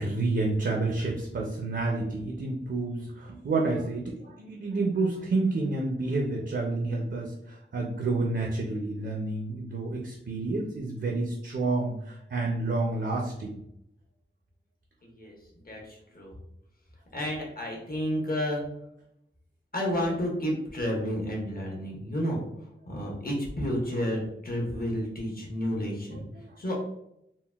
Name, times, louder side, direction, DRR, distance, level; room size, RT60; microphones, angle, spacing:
voice 1, 0.0-13.6 22.9-23.0 26.1-26.5, right 3 dB, 60° right, 0 dB, 0.5 m, -29 dB
voice 2, 15.7-16.3 17.1-18.6 19.7-22.4 22.9-26.2 26.6-26.7, equal, 45° left, -2 dB, 0.9 m, -31 dB
3.7 x 2.1 x 2.3 m, 0.78 s
wide cardioid pair, 55°, 20 cm